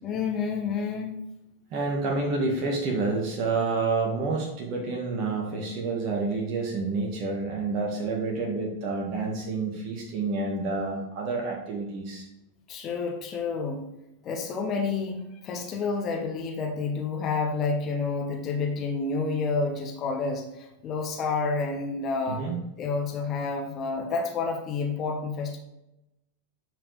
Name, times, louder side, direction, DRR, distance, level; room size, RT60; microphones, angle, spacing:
voice 1, 0.0-1.2 12.7-13.8 14.2-22.5 22.8-25.6, left 4 dB, 30° left, 3 dB, 1.2 m, -29 dB
voice 2, 1.7-12.3 22.3-22.6, right 3 dB, 40° right, -1 dB, 1.7 m, -29 dB
9.8 x 5.0 x 3.3 m, 0.90 s
figure-of-eight pair, 90°, 0 cm